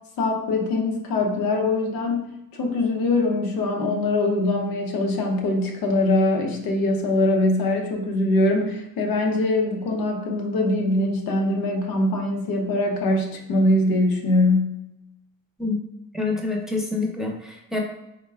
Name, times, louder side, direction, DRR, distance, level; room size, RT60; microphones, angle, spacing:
voice 1, 0.2-14.8, left 2 dB, 90° left, 1 dB, 0.7 m, -22 dB
voice 2, 16.1-17.8, left 3 dB, ahead, 0 dB, 0.6 m, -27 dB
3.5 x 2.2 x 3.3 m, 0.89 s
cardioid pair, 75°, 35 cm